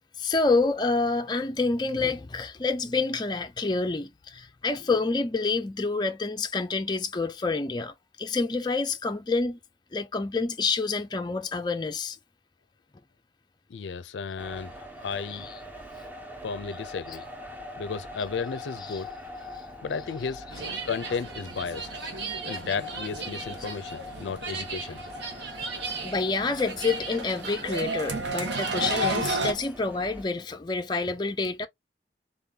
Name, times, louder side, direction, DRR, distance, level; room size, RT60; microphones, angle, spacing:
voice 1, 0.2-9.6 9.9-12.2 15.3-15.5 18.9-19.0 26.0-31.7, left 3 dB, 25° left, 0.4 m, -28 dB
voice 2, 13.7-15.5 16.4-17.3 17.8-19.1 19.8-20.5 20.8-21.9 22.5-25.0, left 5 dB, 80° left, 0.4 m, -33 dB
sound 1, 14.4-30.3, left 1 dB, 10° right, 0.8 m, -43 dB
sound 2, 20.5-29.5, right 2 dB, 75° right, 1.3 m, -33 dB
3.9 x 3.8 x 2.7 m
head